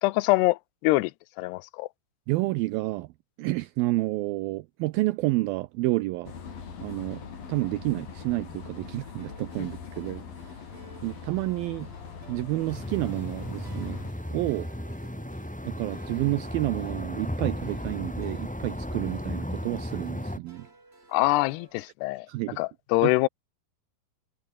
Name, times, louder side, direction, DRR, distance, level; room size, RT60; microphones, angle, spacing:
voice 1, 0.0-1.1 1.4-1.9 9.6-9.7 21.1-22.3 22.6-23.3, left 21 dB, 90° left, 2.8 m, -24 dB
voice 2, 2.3-3.1 3.4-6.3 6.8-10.6 11.0-11.9 12.3-14.0 14.3-14.7 15.6-20.7 22.3-22.6 23.0-23.1, right 19 dB, 80° right, 2.3 m, -30 dB
sound 1, 6.2-14.1, left 6 dB, 60° left, 5.7 m, -42 dB
sound 2, 9.2-21.9, right 2 dB, 15° right, 3.1 m, -54 dB
sound 3, 12.7-20.4, equal, 10° left, 0.3 m, -35 dB
omnidirectional pair, 4.7 m